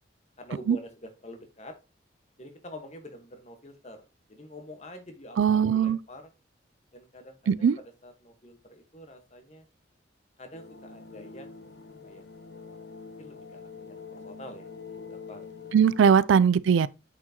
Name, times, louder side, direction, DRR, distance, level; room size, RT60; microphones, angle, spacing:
voice 1, 0.4-1.7 2.4-4.0 4.3-6.3 6.9-9.6 10.4-11.6 12.0-12.2 12.6-14.6 15.1-15.6, left 1 dB, 35° left, 1.3 m, -47 dB
voice 2, 5.4-6.0 7.5-7.8 15.7-16.9, right 7 dB, 85° right, 0.4 m, -20 dB
sound 1, 10.5-16.1, left 5 dB, 60° left, 0.9 m, -45 dB
8.6 x 4.7 x 2.8 m
head